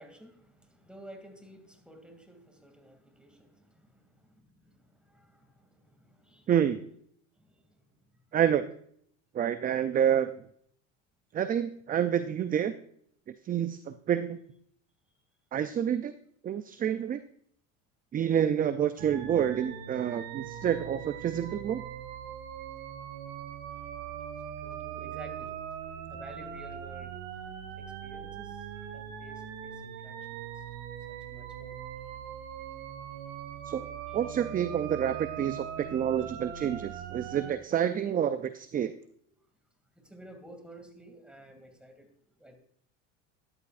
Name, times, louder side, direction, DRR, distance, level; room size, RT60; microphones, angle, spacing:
voice 1, 0.0-6.5 7.4-8.2 24.6-25.5 25.9-27.2 27.8-30.6 31.1-31.8 32.4-32.5 34.1-34.2 36.2-36.3 39.9-42.1 42.4-42.6, right 1 dB, ahead, 4 dB, 2.5 m, -53 dB
voice 2, 6.5-6.8 8.3-8.6 9.3-10.4 11.3-12.7 13.4-14.4 15.5-16.1 16.4-17.2 18.1-21.8 33.6-33.9 34.1-38.9, right 9 dB, 20° right, 12 dB, 0.4 m, -28 dB
sound 1, 19.0-37.5, right 9 dB, 75° right, 1.8 m, -41 dB
13.5 x 11.5 x 2.5 m, 0.66 s
supercardioid pair, 105°, 40 cm